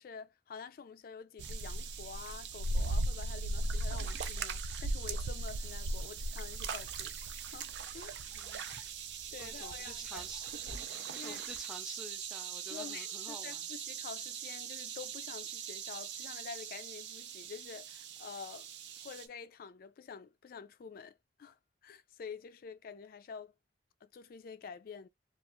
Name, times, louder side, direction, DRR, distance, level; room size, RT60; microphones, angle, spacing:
voice 1, 0.0-7.1 7.4-8.2 8.7-8.8 9.3-10.2 10.9-11.4 12.7-18.7 19.0-23.5 24.0-25.1, left 6 dB, 50° left, 0.3 m, -48 dB
sound 1, 1.4-19.3, right 3 dB, 70° right, 0.4 m, -39 dB
Fire, 4.2-10.9, left 1 dB, 90° right, 1.3 m, -59 dB
voice 2, 8.3-8.9 9.4-10.5 11.1-13.7, equal, 5° right, 0.6 m, -50 dB
2.4 x 2.3 x 2.9 m
head